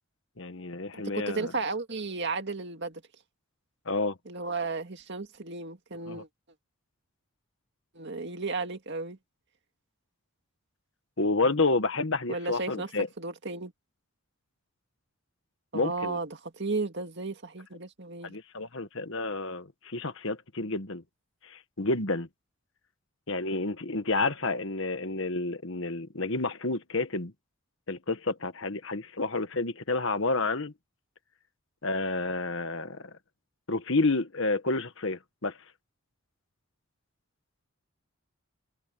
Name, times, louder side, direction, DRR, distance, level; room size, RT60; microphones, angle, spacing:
voice 1, 0.4-1.5 3.8-4.2 6.1-6.2 11.2-13.1 15.7-16.2 18.2-21.0 21.4-22.3 23.3-27.3 27.9-30.7 31.8-33.1 33.7-35.6, left 3 dB, 60° left, 1.5 m, -30 dB
voice 2, 0.9-3.0 4.3-6.3 7.9-9.2 12.3-12.9 13.2-13.7 15.7-18.4, right 3 dB, 50° right, 2.1 m, -34 dB
head